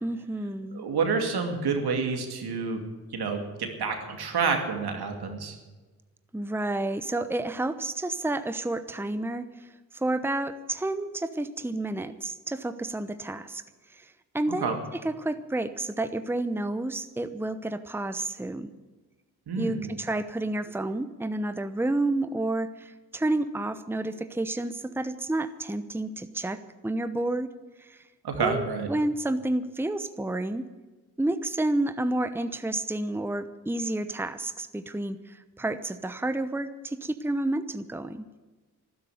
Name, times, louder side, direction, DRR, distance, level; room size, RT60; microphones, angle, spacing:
voice 1, 0.0-0.9 6.3-18.7 19.6-27.5 27.8-28.1 28.4-30.6 31.2-38.3, right 2 dB, 5° right, 11 dB, 0.9 m, -30 dB
voice 2, 0.7-2.8 3.1-5.6 14.6-14.8 19.5-19.9 28.2-28.9, right 5 dB, 75° right, 4 dB, 2.4 m, -28 dB
12.5 x 11.0 x 9.5 m, 1.3 s
supercardioid pair, 45°, 38 cm